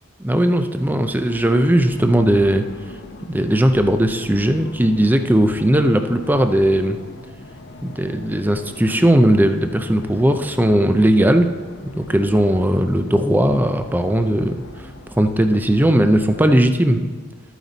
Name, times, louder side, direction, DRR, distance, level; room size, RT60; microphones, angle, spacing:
voice 1, 0.2-2.6 3.3-7.0 7.8-11.5 11.9-14.9 15.2-17.1, right 1 dB, 10° right, 7 dB, 0.5 m, -17 dB
sound 1, 0.8-16.7, left 2 dB, 55° left, 0.9 m, -40 dB
13.0 x 9.2 x 4.0 m, 1.4 s
head